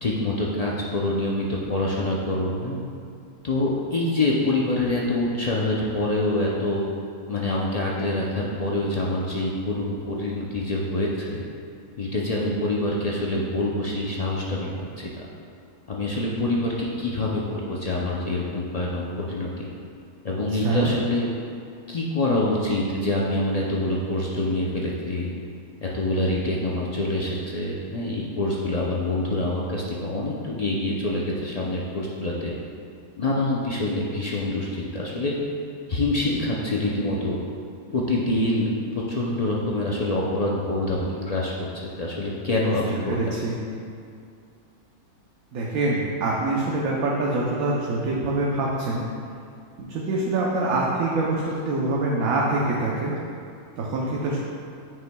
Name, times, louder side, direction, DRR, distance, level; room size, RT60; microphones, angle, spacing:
voice 1, 0.0-2.8 3.4-6.8 7.3-11.4 12.0-14.7 15.0-15.3 15.9-19.7 20.2-21.3 21.9-25.3 25.8-32.5 33.2-35.3 35.9-37.4 37.9-41.7 42.0-43.2, left 2 dB, 85° left, -4 dB, 0.3 m, -26 dB
voice 2, 20.5-20.9 42.9-43.5 45.5-49.0 49.8-53.1 53.8-54.4, right 2 dB, 70° right, -4 dB, 1.2 m, -25 dB
9.4 x 5.5 x 2.2 m, 2.4 s
omnidirectional pair, 1.6 m